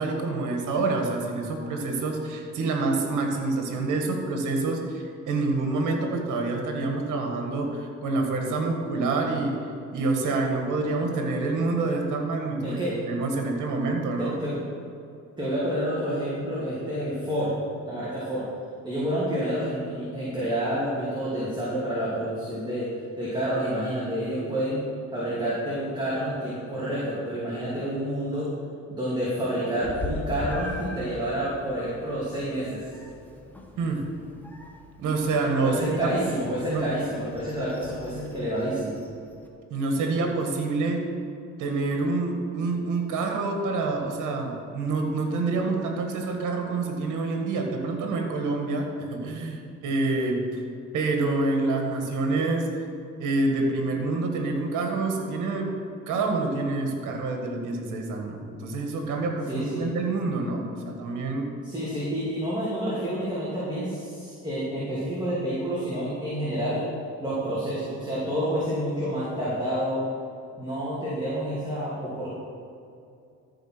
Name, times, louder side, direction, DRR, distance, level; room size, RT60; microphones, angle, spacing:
voice 1, 0.0-9.6 9.9-14.4 33.8-34.0 35.0-36.1 36.7-36.9 39.7-41.1 41.6-50.6 50.9-52.7 53.2-55.8 56.1-61.5, right 3 dB, 80° right, 2 dB, 1.8 m, -27 dB
voice 2, 12.6-12.9 14.2-14.6 15.4-17.5 17.8-18.4 18.8-22.9 23.2-24.8 25.1-28.5 28.9-32.8 35.6-39.0 59.5-59.8 61.6-66.8 67.2-70.0 70.6-72.3, equal, 15° right, -9 dB, 2.9 m, -29 dB
Meow, 29.8-39.5, left 1 dB, 5° left, 1.5 m, -41 dB
14.0 x 5.1 x 6.2 m, 2.5 s
cardioid pair, 90°, 30 cm